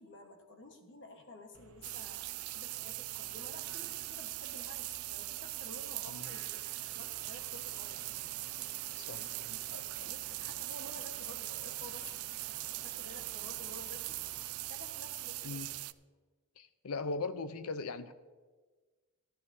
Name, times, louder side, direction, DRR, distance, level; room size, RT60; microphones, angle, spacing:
voice 1, 0.0-8.0 9.2-9.3 10.0-12.1 12.7-14.2 14.7-15.6, left 2 dB, 55° left, 4 dB, 1.3 m, -52 dB
sound 1, 1.5-15.8, right 4 dB, 65° right, 0.9 m, -58 dB
sound 2, 1.8-15.9, right 19 dB, 80° right, 0.3 m, -41 dB
sound 3, 7.2-14.5, left 2 dB, 70° left, 1.8 m, -60 dB
voice 2, 9.0-10.1 15.4-15.7 16.6-18.1, left 3 dB, 85° left, 12 dB, 0.6 m, -40 dB
17.0 x 11.5 x 2.7 m, 1.4 s
head